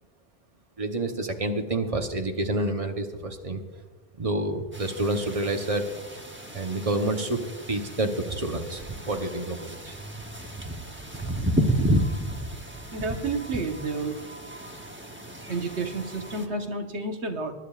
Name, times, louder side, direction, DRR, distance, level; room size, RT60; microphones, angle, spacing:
voice 1, 0.8-3.6 4.2-5.9 6.5-7.4 7.7-10.0, right 2 dB, 35° right, 4 dB, 1.0 m, -28 dB
sound 1, 4.7-16.5, right 1 dB, 10° right, 0.8 m, -32 dB
voice 2, 12.9-14.2 15.5-17.5, right 3 dB, 85° right, 4 dB, 1.5 m, -30 dB
22.5 x 10.5 x 2.4 m, 1.3 s
omnidirectional pair, 1.1 m